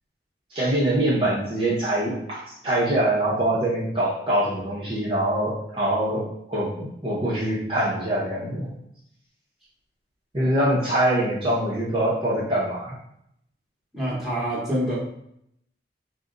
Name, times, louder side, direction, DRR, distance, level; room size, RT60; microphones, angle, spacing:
voice 1, 0.5-8.7 10.3-13.0, right 1 dB, 30° right, -7 dB, 0.7 m, -24 dB
voice 2, 13.9-15.0, equal, ahead, -8 dB, 1.0 m, -26 dB
4.0 x 2.1 x 3.7 m, 0.74 s
head